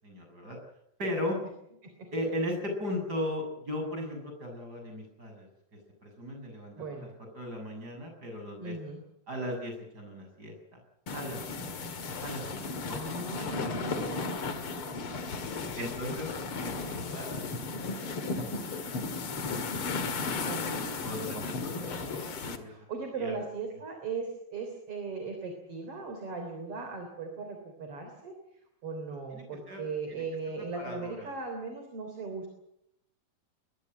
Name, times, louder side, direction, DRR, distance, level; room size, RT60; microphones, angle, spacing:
voice 1, 0.0-0.6 1.0-1.4 2.1-5.5 6.0-7.1 7.3-8.7 9.3-10.5 11.1-11.8 12.2-13.0 13.4-13.5 14.8-16.3 16.6-17.6 18.0-18.7 19.4-20.4 21.0-22.9 23.2-23.4 29.3-29.8 30.1-30.2 30.6-31.3, left 1 dB, 25° right, 3 dB, 7.8 m, -38 dB
voice 2, 6.8-7.1 8.6-9.0 12.5-14.4 20.4-20.8 21.4-21.5 22.6-28.3 28.8-32.5, right 4 dB, 40° right, 4 dB, 4.2 m, -38 dB
sound 1, 11.1-22.6, left 4 dB, 45° left, 2.4 m, -35 dB
22.0 x 21.5 x 7.8 m, 0.81 s
omnidirectional pair, 4.1 m